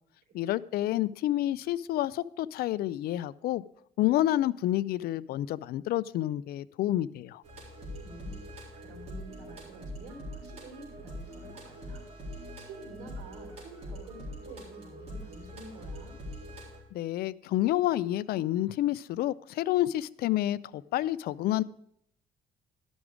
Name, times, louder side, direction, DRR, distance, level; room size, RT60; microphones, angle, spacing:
voice 1, 0.3-3.6 4.0-7.4 16.9-21.6, left 14 dB, 65° left, 19 dB, 0.4 m, -29 dB
sound 1, 7.4-16.8, equal, 40° right, 4.0 m, -43 dB
voice 2, 8.0-12.0 12.3-16.1, right 2 dB, 65° right, -1 dB, 3.7 m, -49 dB
12.0 x 6.1 x 4.9 m, 0.73 s
cardioid pair, 110°, 17 cm